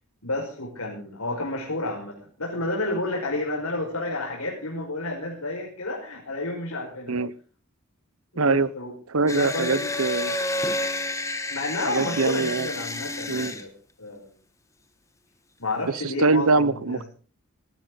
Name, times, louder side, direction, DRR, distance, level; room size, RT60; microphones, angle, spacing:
voice 1, 0.2-7.2 8.3-8.9 9.2-9.9 11.5-13.7 14.0-14.3 15.6-17.0, left 2 dB, 90° left, -2 dB, 5.4 m, -30 dB
voice 2, 8.4-8.7 9.1-10.3 11.9-12.7 13.3-13.5 16.2-17.0, right 3 dB, 80° right, 18 dB, 0.8 m, -23 dB
sound 1, 9.3-13.6, left 2 dB, 15° left, 1.2 m, -30 dB
19.5 x 13.5 x 4.0 m, 0.40 s
head